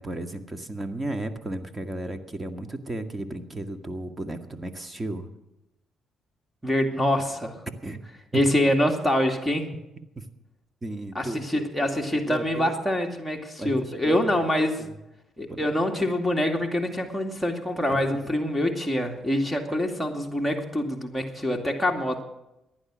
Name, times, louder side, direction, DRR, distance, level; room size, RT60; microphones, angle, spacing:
voice 1, 0.0-5.3 7.7-8.0 8.3-8.4 10.2-10.3 10.8-11.9 12.1-12.8 13.6-14.3 14.8-14.9 15.4-15.7 17.9-18.0, right 2 dB, 25° right, 6 dB, 1.9 m, -34 dB
voice 2, 6.6-7.6 8.3-9.7 11.1-14.8 15.4-22.2, left 1 dB, ahead, 0 dB, 2.3 m, -25 dB
15.5 x 11.0 x 6.3 m, 0.90 s
supercardioid pair, 60°, 0 cm